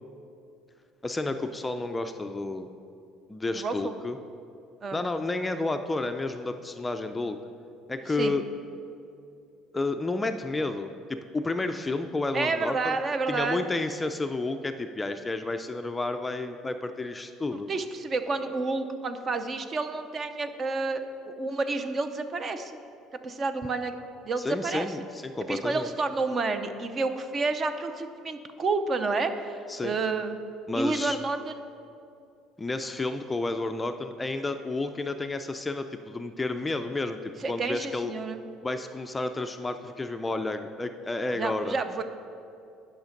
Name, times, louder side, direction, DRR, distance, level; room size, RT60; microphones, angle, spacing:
voice 1, 1.0-2.7 3.3-4.2 4.9-7.4 7.9-8.4 9.7-13.0 13.3-17.7 24.4-25.9 29.7-30.0 30.7-31.2 32.6-37.2 37.5-38.1 38.6-41.7, left 2 dB, 15° left, 7 dB, 0.4 m, -31 dB
voice 2, 3.5-3.9 4.8-5.0 8.2-8.3 12.3-13.6 17.7-22.7 23.2-24.0 24.2-24.9 25.5-30.4 30.7-31.5 37.4-38.4 41.3-42.0, right 3 dB, 35° right, 9 dB, 0.6 m, -30 dB
10.5 x 5.8 x 5.1 m, 2.6 s
cardioid pair, 125°, 0 cm